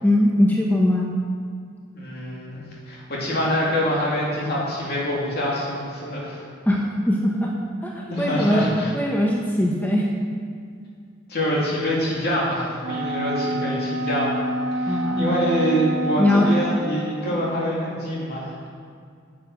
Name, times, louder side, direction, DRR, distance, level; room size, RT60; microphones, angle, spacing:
voice 1, 0.0-1.1 6.7-6.8 7.1-7.6 7.8-8.6 8.9-10.1 14.9-15.3 16.2-16.5, left 1 dB, 10° left, -2 dB, 0.9 m, -21 dB
voice 2, 1.9-6.4 8.1-8.9 11.3-14.3 14.7-18.5, equal, 55° left, -5 dB, 2.9 m, -25 dB
Wind instrument woodwind instrument, 12.8-17.1, right 1 dB, 60° right, 1.3 m, -27 dB
9.8 x 7.4 x 6.1 m, 2.2 s
head